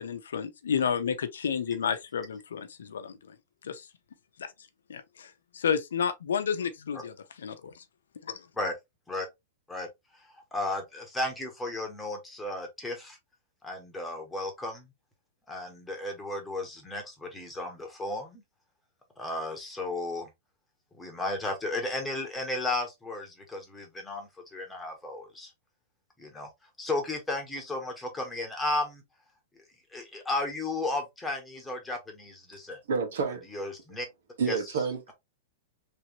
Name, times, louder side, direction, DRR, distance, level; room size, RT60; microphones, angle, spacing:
voice 1, 0.0-3.3 3.6-3.9 4.4-4.5 4.9-7.8 8.2-8.5, left 7 dB, 90° left, 0.7 m, -31 dB
voice 2, 10.3-13.2 13.6-14.9 15.5-18.4 19.2-20.3 21.0-25.5 26.2-26.5 26.8-29.0 29.9-32.8 33.5-34.1 34.5-34.6, left 2 dB, 10° left, 1.3 m, -34 dB
voice 3, 32.9-33.4 34.4-35.1, right 5 dB, 75° right, 1.6 m, -29 dB
3.4 x 2.9 x 2.9 m
hypercardioid pair, 135°, 0 cm